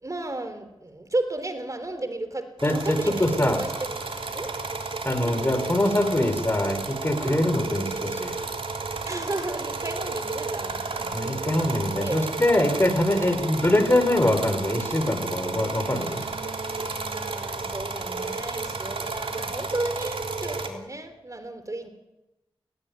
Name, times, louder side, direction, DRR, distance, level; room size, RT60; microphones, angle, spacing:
voice 1, 0.0-4.1 4.3-4.5 5.2-5.4 7.2-7.4 9.0-11.1 12.0-12.3 13.3-13.6 15.8-21.9, right 2 dB, 35° right, 10 dB, 3.6 m, -34 dB
voice 2, 2.6-3.6 5.0-8.4 11.1-16.2, left 1 dB, 25° left, 9 dB, 4.7 m, -23 dB
sound 1, 2.6-20.7, right 3 dB, 65° right, 3.4 m, -32 dB
18.5 x 17.5 x 9.6 m, 1.0 s
cardioid pair, 40°, 10 cm